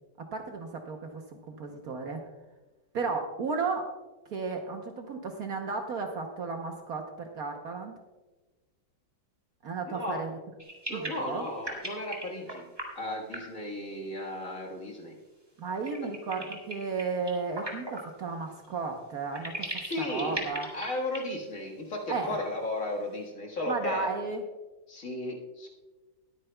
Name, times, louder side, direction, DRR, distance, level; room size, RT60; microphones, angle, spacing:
voice 1, 0.2-2.2 2.9-3.9 4.3-8.0 9.6-10.4 10.9-11.5 15.6-20.7 22.1-22.4 23.7-24.4, right 4 dB, 55° right, 3 dB, 1.2 m, -34 dB
voice 2, 9.9-10.2 10.9-12.6 13.0-15.2 16.0-16.1 19.8-24.1 24.9-25.7, left 1 dB, 45° left, -1 dB, 1.9 m, -35 dB
sound 1, 10.6-12.9 13.3-13.6 15.8-18.0 18.6-18.7 19.3-21.2 21.5-21.6 21.9-22.0, right 1 dB, 15° right, 1.8 m, -38 dB
21.0 x 9.2 x 2.2 m, 1.2 s
omnidirectional pair, 2.1 m